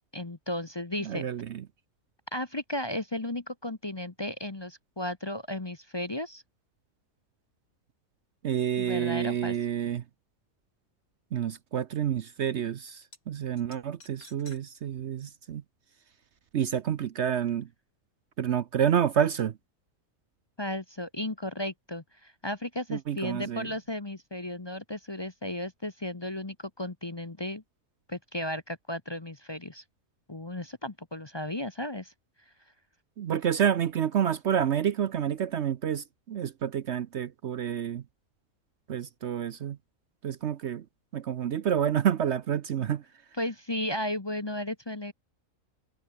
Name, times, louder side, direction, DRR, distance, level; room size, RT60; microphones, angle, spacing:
voice 1, 0.1-1.3 2.3-6.4 8.8-9.6 20.6-27.6 28.1-29.8 30.3-32.1 43.4-45.1, left 1 dB, 20° left, 0.9 m, -34 dB
voice 2, 1.0-1.6 8.4-10.0 11.3-15.6 16.5-17.7 18.4-19.5 22.9-23.7 33.2-38.0 38.9-39.8 40.2-40.8 41.1-43.0, right 9 dB, 60° right, 0.9 m, -29 dB
sound 1, 13.0-13.2 13.6-14.6 15.0-15.1 16.6-16.7, left 3 dB, 85° left, 4.9 m, -52 dB
omnidirectional pair, 1.5 m